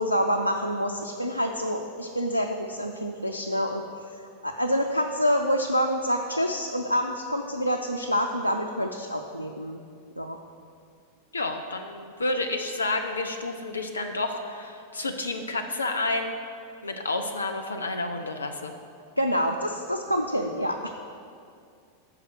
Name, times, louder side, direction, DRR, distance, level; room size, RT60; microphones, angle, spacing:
voice 1, 0.0-3.8 4.1-9.8 10.2-10.4 19.2-20.9, equal, 90° right, 4 dB, 0.4 m, -27 dB
voice 2, 11.3-16.4 16.8-18.7, left 2 dB, 75° left, 5 dB, 0.4 m, -30 dB
6.7 x 5.7 x 6.4 m, 2.4 s
figure-of-eight pair, 90°, 0 cm